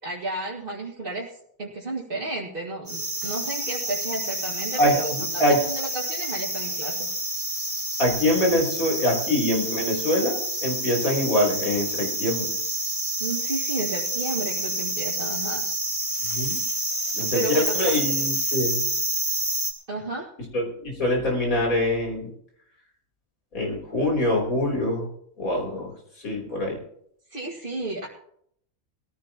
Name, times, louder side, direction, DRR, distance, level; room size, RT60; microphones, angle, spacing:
voice 1, 0.0-1.3 1.6-7.1 13.2-15.6 17.3-18.0 19.9-20.3 27.3-28.1, right 2 dB, 40° right, -5 dB, 2.2 m, -32 dB
sound 1, 2.9-19.7, right 1 dB, 20° right, 3.7 m, -28 dB
voice 2, 4.8-5.6 8.0-12.5 16.2-16.6 17.1-18.8 20.5-22.3 23.5-25.1 25.4-25.9 26.2-26.8, left 1 dB, 85° left, 0 dB, 4.1 m, -24 dB
20.5 x 15.0 x 2.9 m, 0.69 s
omnidirectional pair, 1.4 m